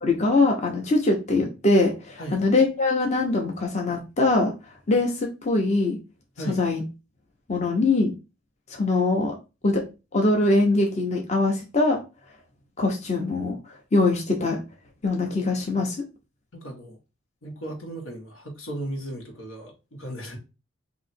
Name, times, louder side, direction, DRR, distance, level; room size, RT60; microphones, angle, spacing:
voice 1, 0.0-4.5 4.9-6.0 6.5-6.8 7.5-8.1 8.7-9.3 9.6-9.8 10.1-12.0 12.8-13.6 13.9-14.6 15.0-16.0, left 2 dB, 35° left, 0.8 m, -22 dB
voice 2, 16.5-17.0 17.4-20.4, right 1 dB, 90° left, 1.5 m, -36 dB
3.2 x 2.8 x 4.2 m
head